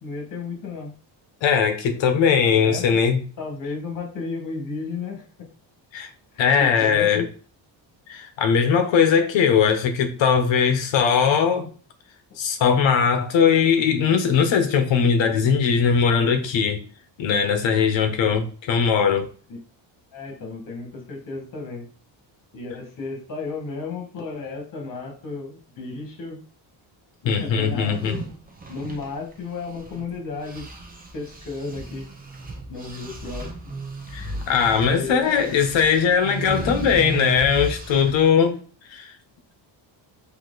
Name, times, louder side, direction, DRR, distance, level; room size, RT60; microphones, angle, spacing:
voice 1, 0.0-0.9 1.8-2.0 2.4-2.9 3.4-5.5 6.3-7.3 10.5-10.7 19.5-19.6 20.1-21.9 22.5-26.4 27.2-28.2 28.7-30.7 31.1-32.1 32.7-33.5 34.9-35.5 36.6-36.7, left 4 dB, 45° left, 1.7 m, -33 dB
voice 2, 1.4-3.2 5.9-6.1 6.4-7.2 8.1-11.7 12.4-16.8 17.2-19.3 27.2-28.2 34.1-38.6 38.9-39.1, left 6 dB, 70° left, 1.0 m, -20 dB
sound 1, 27.7-30.1 30.4-38.3, right 2 dB, 20° right, 0.7 m, -34 dB
4.7 x 2.9 x 3.9 m
cardioid pair, 175°, 47 cm